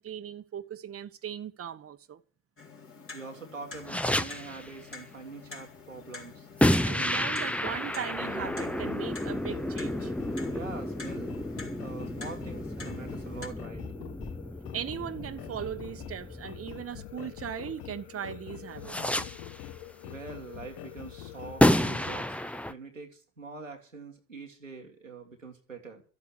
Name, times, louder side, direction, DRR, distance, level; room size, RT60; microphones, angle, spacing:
voice 1, 0.0-2.2 6.8-10.1 14.7-19.2, right 9 dB, 35° right, 1.3 m, -38 dB
Clock, 2.6-13.5, left 4 dB, 35° left, 4.0 m, -47 dB
voice 2, 3.1-6.5 10.5-11.4 11.8-13.9 20.0-22.4 22.7-26.0, right 4 dB, 90° right, 1.7 m, -44 dB
sound 1, 3.8-4.7 6.6-17.5 18.8-19.7 21.6-22.7, left 1 dB, 5° left, 0.9 m, -30 dB
sound 2, 8.1-22.2, left 13 dB, 65° left, 1.1 m, -45 dB
13.5 x 8.4 x 8.3 m
figure-of-eight pair, 45°, 37 cm